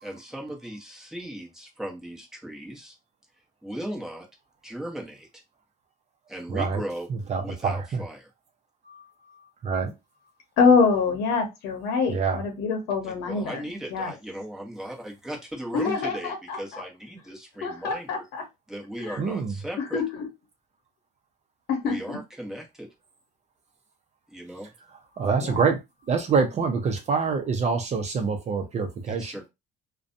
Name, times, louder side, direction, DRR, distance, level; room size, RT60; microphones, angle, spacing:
voice 1, 0.0-2.9 3.6-4.3 4.6-5.3 6.3-7.1 7.4-8.3 13.0-18.2 18.7-20.0 21.8-22.9 24.3-24.7 29.1-29.5, right 1 dB, 5° right, 0.9 m, -37 dB
voice 2, 6.5-6.8 7.1-8.0 8.9-9.0 9.6-9.9 12.1-12.4 19.2-19.5 25.2-25.8 26.1-29.4, right 5 dB, 40° right, 0.6 m, -26 dB
voice 3, 10.6-13.6 13.9-14.1 15.7-16.8 17.6-18.4 19.0-19.2 19.9-20.1 21.7-22.2 25.4-25.6, left 5 dB, 90° left, 0.8 m, -25 dB
2.5 x 2.2 x 2.5 m
cardioid pair, 110°, 17 cm